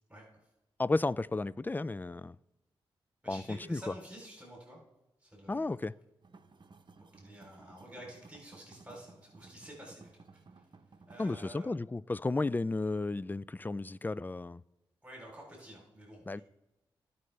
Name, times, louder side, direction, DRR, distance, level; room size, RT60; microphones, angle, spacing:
voice 1, 0.8-2.4 3.3-3.8 5.5-5.9 11.2-14.6 16.3-16.4, left 2 dB, 20° left, 0.3 m, -33 dB
voice 2, 3.2-4.8 5.2-5.8 7.2-10.6 11.1-11.7 15.0-16.4, right 1 dB, 10° right, 3.3 m, -50 dB
sound 1, 6.2-11.4, right 4 dB, 50° right, 0.9 m, -57 dB
16.0 x 5.5 x 3.3 m
supercardioid pair, 40°, 10 cm